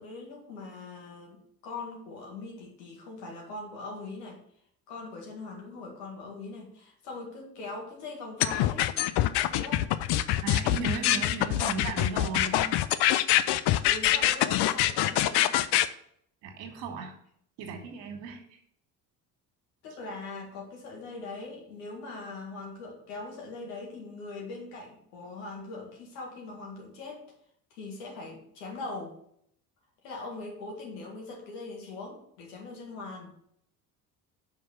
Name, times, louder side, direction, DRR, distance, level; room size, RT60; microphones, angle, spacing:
voice 1, 0.0-4.4 4.9-8.9 9.3-9.9 12.5-12.8 13.9-15.5 19.8-27.3 27.7-29.2 30.0-33.3, left 3 dB, 75° left, 0 dB, 2.1 m, -41 dB
sound 1, 8.4-15.9, left 14 dB, 55° left, 0.6 m, -24 dB
voice 2, 10.4-12.6 16.4-17.1 17.6-18.4, right 4 dB, 65° right, 3 dB, 1.8 m, -36 dB
5.8 x 4.8 x 6.1 m, 0.69 s
hypercardioid pair, 60°, 49 cm